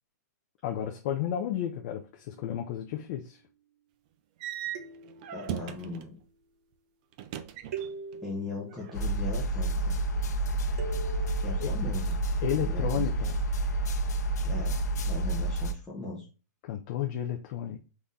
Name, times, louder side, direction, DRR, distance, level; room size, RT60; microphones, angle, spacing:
voice 1, 0.6-3.4 11.6-11.7 12.4-13.4 16.6-17.8, left 10 dB, 30° left, 0.5 m, -32 dB
sound 1, 2.3-2.9 4.7-6.1 7.7-9.7 10.8-12.2, right 4 dB, 60° right, 0.9 m, -43 dB
sound 2, 4.4-6.2 7.1-8.2 8.5-9.3, right 10 dB, 25° right, 0.3 m, -39 dB
voice 2, 5.3-6.2 8.2-10.0 11.3-12.2 12.6-13.3 14.4-14.8 15.0-16.3, left 3 dB, ahead, 1.0 m, -39 dB
sound 3, 8.9-15.7, right 2 dB, 70° left, 0.7 m, -29 dB
4.1 x 3.5 x 3.6 m
hypercardioid pair, 170°, 9 cm